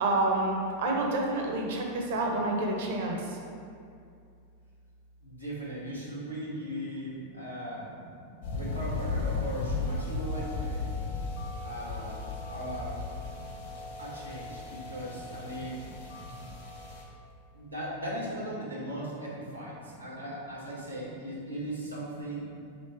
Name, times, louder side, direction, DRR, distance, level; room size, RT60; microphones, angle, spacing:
voice 1, 0.0-3.4 7.2-7.3 10.9-11.1, right 2 dB, 55° right, 0 dB, 0.6 m, -29 dB
voice 2, 5.2-7.9 8.5-10.8 11.6-12.2 12.5-13.0 14.0-15.8 17.5-22.5, equal, 85° right, -5 dB, 0.9 m, -38 dB
sound 1, 8.4-17.0, left 3 dB, 60° left, 0.7 m, -36 dB
3.1 x 2.9 x 4.4 m, 2.4 s
figure-of-eight pair, 90°, 0 cm